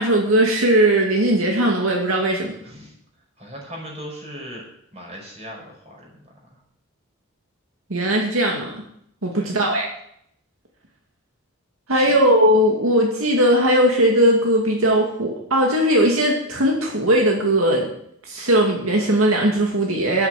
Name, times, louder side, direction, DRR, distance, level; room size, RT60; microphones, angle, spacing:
voice 1, 0.0-2.6 7.9-8.8 9.2-9.9 11.9-17.9 18.3-20.3, right 1 dB, 80° right, 0 dB, 2.4 m, -18 dB
voice 2, 2.6-2.9 3.4-4.7 4.9-6.1 9.3-9.6 11.9-12.2, equal, 30° right, -1 dB, 5.5 m, -38 dB
10.5 x 9.1 x 7.8 m, 0.69 s
head